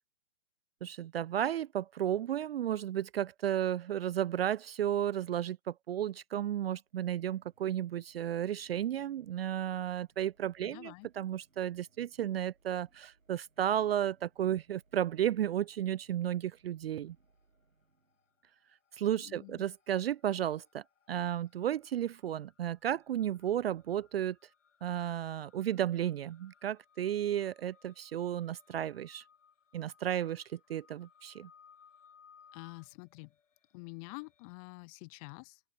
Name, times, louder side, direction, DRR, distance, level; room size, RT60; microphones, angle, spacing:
voice 1, 0.8-17.2 18.9-24.4 24.8-29.2 29.7-30.4 30.7-31.5, right 11 dB, 50° right, 0.5 m, -33 dB
sound 1, 6.8-18.6, right 3 dB, 85° right, 7.3 m, -72 dB
voice 2, 10.6-11.1 19.2-19.6 32.5-33.3 33.7-35.6, left 30 dB, 30° left, 1.2 m, -47 dB
sound 2, 17.0-17.6 17.9-34.5, left 7 dB, 65° left, 7.0 m, -65 dB
open air
figure-of-eight pair, 125°, 39 cm